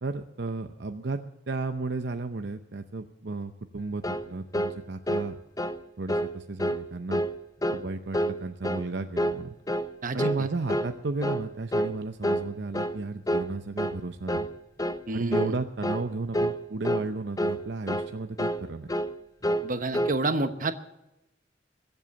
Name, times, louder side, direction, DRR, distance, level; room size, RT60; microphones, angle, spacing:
voice 1, 0.0-5.4 6.0-7.2 7.7-9.6 10.1-14.5 15.1-18.9, right 3 dB, 65° right, 7 dB, 0.7 m, -33 dB
sound 1, 4.0-4.3 4.5-4.8 5.1-5.3 5.6-5.8 6.1-6.3 6.6-6.8 7.1-7.3 7.6-7.8 8.1-8.4 8.6-8.9 9.2-9.4 9.7-9.9 10.2-10.4 10.7-10.9 11.2-11.5 11.7-11.9 12.2-12.5 12.7-13.0 13.3-13.5 13.8-14.0 14.3-14.5 14.8-15.0 15.3-15.5 15.8-16.1 16.3-16.6 16.8-17.1 17.4-17.6 17.9-18.1 18.4-18.6 18.9-19.1 19.4-19.7 19.9-20.2, equal, 20° left, 0.6 m, -28 dB
voice 2, 10.0-10.5 15.1-15.5 19.6-20.7, right 2 dB, 45° right, 9 dB, 1.1 m, -29 dB
22.5 x 8.1 x 6.9 m, 0.91 s
head